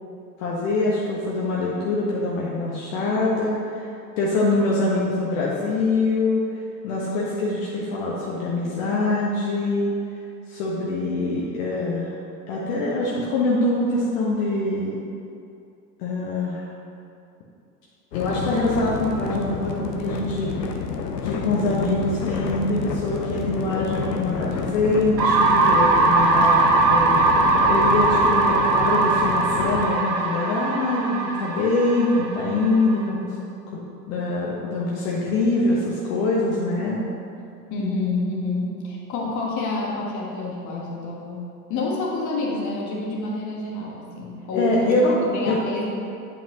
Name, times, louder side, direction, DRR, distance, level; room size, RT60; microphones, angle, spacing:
voice 1, 0.4-6.4 6.8-9.9 10.5-12.1 12.5-15.0 16.0-16.7 18.1-20.7 21.2-33.4 33.7-33.8 34.1-37.0 44.5-45.2 45.5-45.6, left 2 dB, 55° left, -5 dB, 1.2 m, -24 dB
sound 1, 18.1-29.9, left 5 dB, 75° left, 0.7 m, -29 dB
sound 2, 25.2-33.0, right 3 dB, 80° right, 0.9 m, -20 dB
voice 2, 37.7-45.0 45.2-45.9, left 2 dB, 35° left, -2 dB, 1.4 m, -28 dB
8.8 x 5.4 x 2.9 m, 2.5 s
figure-of-eight pair, 80°, 49 cm